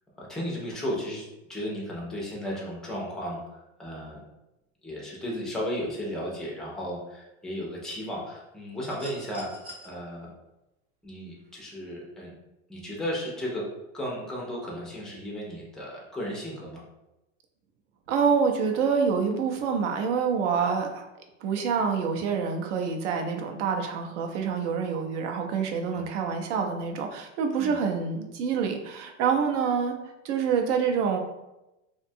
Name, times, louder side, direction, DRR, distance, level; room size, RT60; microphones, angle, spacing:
voice 1, 0.2-1.2 1.5-4.2 4.8-9.5 9.8-10.3 11.0-12.3 12.7-13.7 13.9-16.8 25.9-26.1 27.6-27.8, equal, ahead, -4 dB, 0.4 m, -34 dB
sound 1, 8.8-9.9 11.4-11.5, equal, 35° right, 0.7 m, -45 dB
voice 2, 18.1-21.1 21.4-29.9 30.2-31.2, right 6 dB, 70° right, 4 dB, 0.6 m, -26 dB
2.6 x 2.2 x 2.6 m, 0.95 s
supercardioid pair, 135°, 37 cm